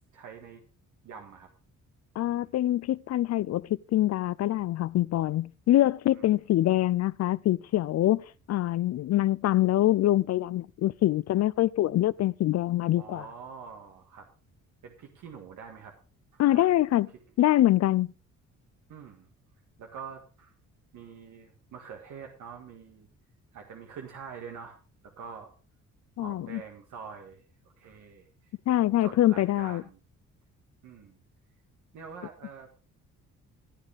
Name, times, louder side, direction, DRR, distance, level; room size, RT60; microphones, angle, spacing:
voice 1, 0.1-0.6 1.0-1.5 2.3-2.5 6.1-6.3 12.9-14.3 14.8-15.9 16.3-16.7 18.9-19.3 19.8-20.5 20.9-23.1 23.5-24.8 25.2-25.5 26.2-27.4 27.8-28.5 28.8-30.0 30.8-31.2 31.9-32.7, right 6 dB, 75° right, 1.8 m, -45 dB
voice 2, 2.2-8.2 8.5-13.2 16.4-17.1 17.4-18.1 26.2-26.6 28.7-29.8, left 14 dB, 60° left, 0.5 m, -24 dB
15.5 x 9.0 x 3.4 m
cardioid pair, 90°, 30 cm